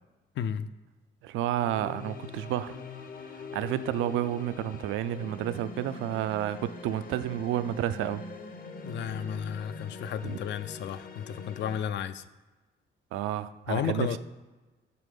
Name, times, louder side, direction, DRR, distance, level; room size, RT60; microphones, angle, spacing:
voice 1, 0.4-0.7 8.8-12.2 13.7-14.2, left 9 dB, 65° left, 13 dB, 0.4 m, -33 dB
voice 2, 1.2-2.8 3.5-8.2 10.2-10.4 13.1-14.2, right 12 dB, 85° right, 13 dB, 0.4 m, -30 dB
sound 1, 1.5-11.8, left 4 dB, 45° left, 0.8 m, -43 dB
6.8 x 4.2 x 5.3 m, 1.2 s
cardioid pair, 90°, 20 cm